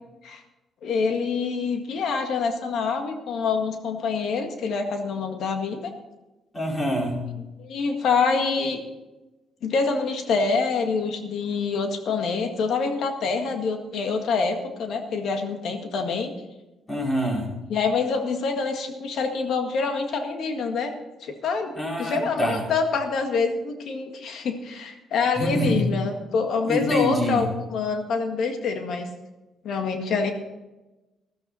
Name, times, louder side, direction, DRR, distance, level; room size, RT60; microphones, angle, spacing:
voice 1, 0.8-5.9 7.6-8.8 9.6-16.3 17.7-20.9 21.2-21.7 22.0-29.1 29.6-30.3, left 4 dB, 70° left, 5 dB, 1.9 m, -26 dB
voice 2, 6.5-7.3 16.9-17.6 21.7-22.6 25.4-25.8 26.6-27.5, equal, 25° left, -2 dB, 4.9 m, -26 dB
14.0 x 12.5 x 4.3 m, 1.1 s
cardioid pair, 90°, 0 cm